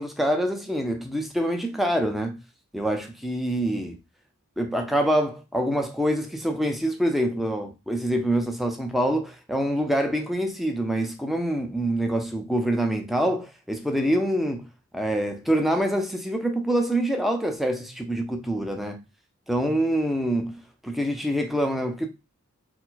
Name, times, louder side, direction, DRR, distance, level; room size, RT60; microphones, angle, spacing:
voice 1, 0.0-2.4 2.7-4.0 4.6-14.6 14.9-19.0 19.5-22.1, right 1 dB, ahead, 0.6 m, -25 dB
4.6 x 2.1 x 4.0 m
head